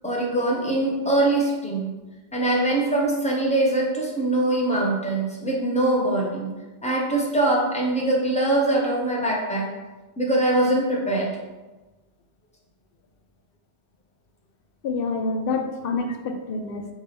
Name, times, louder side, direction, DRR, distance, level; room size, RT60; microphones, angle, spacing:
voice 1, 0.0-1.9 2.3-6.5 6.8-9.7 10.2-11.3, right 2 dB, 5° left, -3 dB, 0.7 m, -23 dB
voice 2, 14.8-16.9, left 3 dB, 65° left, 5 dB, 0.7 m, -27 dB
3.4 x 3.2 x 4.8 m, 1.2 s
omnidirectional pair, 1.1 m